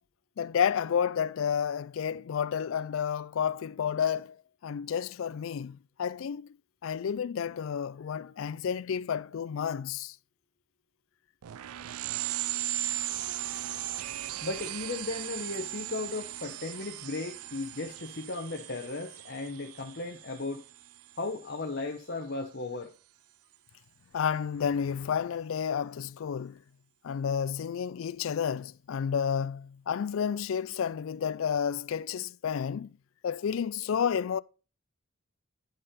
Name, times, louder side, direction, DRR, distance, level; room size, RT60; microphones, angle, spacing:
voice 1, 0.4-4.4 4.6-6.5 6.8-10.2 24.1-26.6 27.0-32.9 33.2-34.4, left 7 dB, 65° left, 0.3 m, -31 dB
sound 1, 11.4-21.6, right 15 dB, 90° right, 0.4 m, -37 dB
voice 2, 14.4-20.6 21.2-22.9, left 3 dB, 50° left, 0.8 m, -36 dB
10.5 x 5.1 x 4.2 m
head